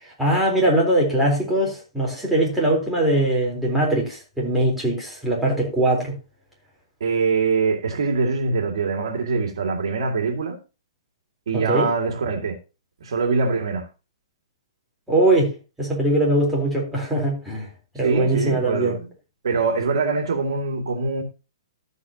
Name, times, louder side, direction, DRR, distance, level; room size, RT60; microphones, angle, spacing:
voice 1, 0.0-6.1 11.5-11.9 15.1-15.5 15.8-17.7 17.9-19.0, right 1 dB, 5° right, 3.8 m, -21 dB
voice 2, 7.0-10.6 11.5-12.6 13.0-13.9 18.0-19.0 19.4-21.2, right 4 dB, 70° right, 2.3 m, -23 dB
13.5 x 8.3 x 2.9 m
hypercardioid pair, 150°, 3 cm